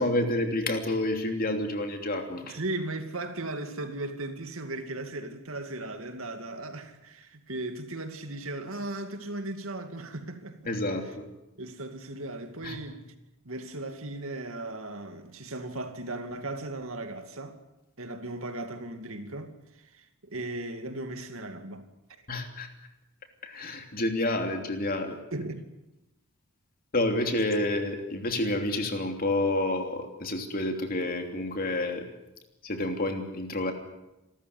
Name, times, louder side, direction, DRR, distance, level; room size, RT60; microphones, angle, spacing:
voice 1, 0.0-2.6 10.7-11.3 12.6-12.8 22.3-22.7 23.4-25.2 26.9-32.0 32.6-33.7, left 1 dB, 40° left, 3.1 m, -29 dB
voice 2, 2.4-10.7 11.6-13.0 13.4-17.6 18.0-21.9 25.3-25.6, right 2 dB, 70° right, 2.4 m, -37 dB
28.0 x 13.5 x 9.7 m
head